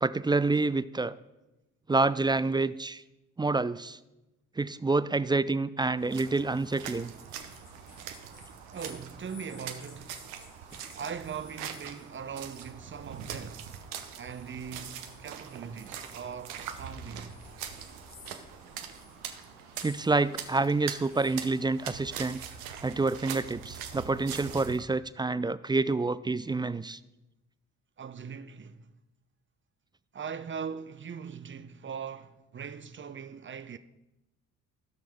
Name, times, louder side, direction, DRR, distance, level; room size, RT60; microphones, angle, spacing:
voice 1, 0.0-1.1 1.9-3.0 3.4-4.0 4.6-7.1 19.8-22.4 22.8-27.0, right 3 dB, 10° right, 0.3 m, -28 dB
sound 1, 6.0-24.8, right 8 dB, 85° right, 1.0 m, -43 dB
sound 2, 6.5-22.7, left 4 dB, 75° left, 1.8 m, -57 dB
voice 2, 8.7-10.4 10.9-13.7 14.2-17.3 28.0-28.9 30.1-33.8, right 6 dB, 30° right, 0.8 m, -40 dB
17.0 x 5.9 x 3.6 m
hypercardioid pair, 50°, 39 cm